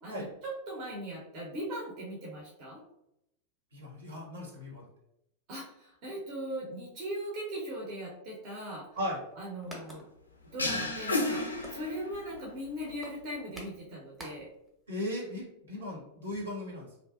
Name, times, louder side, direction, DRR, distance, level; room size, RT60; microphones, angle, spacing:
voice 1, 0.0-2.8 5.5-8.9 9.4-10.0 10.5-14.5, right 1 dB, 40° right, -3 dB, 0.7 m, -39 dB
voice 2, 3.7-4.8 9.0-9.2 14.9-16.9, left 1 dB, 70° right, -2 dB, 0.8 m, -37 dB
sound 1, 8.9-14.7 15.0-15.1 15.3-15.5, equal, 5° right, 0.7 m, -50 dB
sound 2, 10.6-12.4, left 2 dB, 80° left, 0.3 m, -32 dB
2.5 x 2.1 x 2.3 m, 0.80 s
figure-of-eight pair, 90°, 0 cm